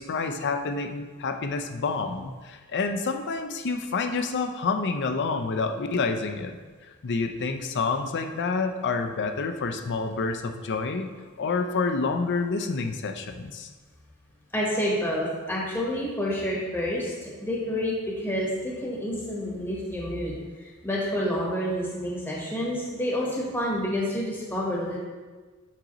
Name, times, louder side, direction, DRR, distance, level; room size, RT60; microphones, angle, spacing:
voice 1, 0.0-6.6 7.0-11.1 11.4-13.7, left 4 dB, 55° left, 6 dB, 0.5 m, -28 dB
voice 2, 14.5-25.0, equal, 10° left, -4 dB, 1.1 m, -29 dB
7.3 x 5.2 x 3.0 m, 1.4 s
head